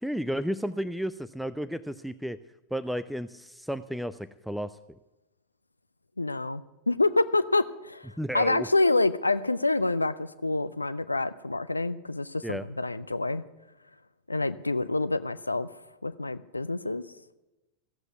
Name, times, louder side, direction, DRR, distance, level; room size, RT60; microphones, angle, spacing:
voice 1, 0.0-2.4 2.7-4.8 8.2-8.7 12.4-12.6, equal, ahead, 13 dB, 0.4 m, -32 dB
voice 2, 6.2-13.4 14.3-15.7 16.0-17.0, left 2 dB, 80° left, 15 dB, 0.4 m, -27 dB
15.0 x 8.0 x 9.4 m, 1.0 s
figure-of-eight pair, 90°, 0 cm